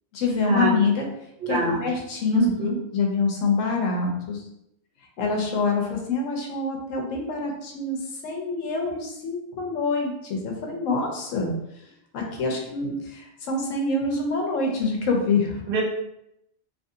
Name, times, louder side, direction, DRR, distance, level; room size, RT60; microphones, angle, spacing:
voice 1, 0.1-1.1 1.5-4.4 5.2-8.0 8.2-11.5 12.1-15.6, left 4 dB, 90° left, 1 dB, 1.1 m, -26 dB
voice 2, 1.4-1.8 2.3-2.8 15.7-15.8, right 4 dB, 55° right, -2 dB, 0.8 m, -24 dB
2.8 x 2.5 x 2.7 m, 0.80 s
omnidirectional pair, 1.3 m